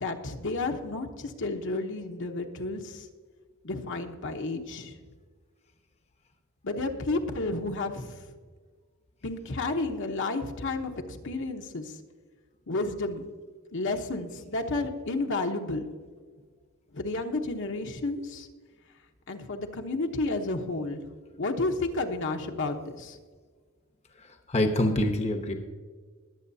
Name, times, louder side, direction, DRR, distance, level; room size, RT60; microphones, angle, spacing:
voice 1, 0.0-3.0 3.6-4.9 6.6-8.2 9.2-11.9 12.7-13.3 13.7-15.9 16.9-18.5 19.3-21.0 21.4-23.2, left 2 dB, 60° left, 3 dB, 1.0 m, -31 dB
voice 2, 24.2-25.5, left 1 dB, 30° left, 5 dB, 0.9 m, -26 dB
21.0 x 8.0 x 2.7 m, 1.5 s
head